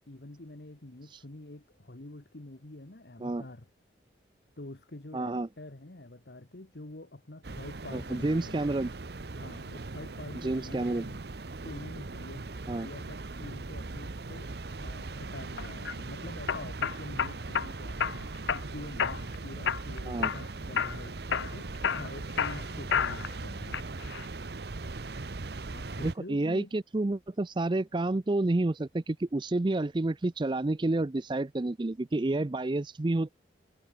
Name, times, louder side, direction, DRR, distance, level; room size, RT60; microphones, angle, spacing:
voice 1, 0.1-3.7 4.6-8.7 9.3-11.2 11.6-12.4 12.8-14.5 14.8-18.4 18.7-23.9 25.7-26.7, left 2 dB, 65° left, 1.4 m, -46 dB
voice 2, 5.1-5.5 7.9-8.9 10.4-11.1 12.7-12.9 20.1-20.3 26.0-33.3, right 2 dB, 25° right, 0.4 m, -29 dB
sound 1, 7.4-26.1, right 3 dB, 60° right, 0.9 m, -40 dB
sound 2, 15.6-15.9 16.5-17.7 18.0-18.6 19.0-19.4 19.7-20.4 20.8-21.0 21.3-23.3 23.7-24.2, left 7 dB, 80° left, 0.6 m, -30 dB
head